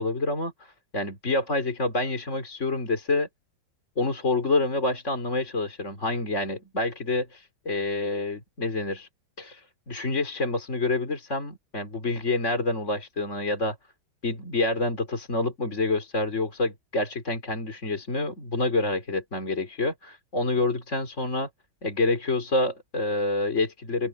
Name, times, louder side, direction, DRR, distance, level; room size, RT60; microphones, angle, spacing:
voice 1, 0.0-3.3 4.0-9.1 9.4-13.8 14.2-21.5 21.8-24.1, left 2 dB, 40° left, 3.7 m, -27 dB
open air
omnidirectional pair, 2.0 m